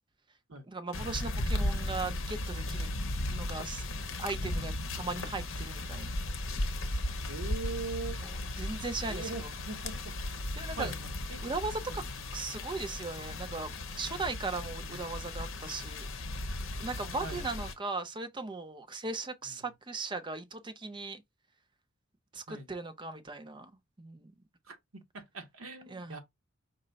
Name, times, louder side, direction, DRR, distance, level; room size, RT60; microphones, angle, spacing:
voice 1, 0.7-3.0 3.3-3.8 4.2-6.1 8.2-9.5 10.6-10.9 11.4-12.0 12.3-16.1 16.8-21.2 22.3-23.7 24.0-24.3 25.9-26.2, right 3 dB, 25° right, 0.6 m, -38 dB
sound 1, 0.9-17.7, left 1 dB, 70° left, 0.8 m, -36 dB
voice 2, 7.3-8.2 9.1-10.4 10.7-11.4 11.9-12.0 14.8-15.0 17.2-17.5 19.4-19.6 22.5-22.7 24.7-26.2, right 3 dB, 85° right, 1.3 m, -42 dB
5.2 x 2.2 x 3.9 m
head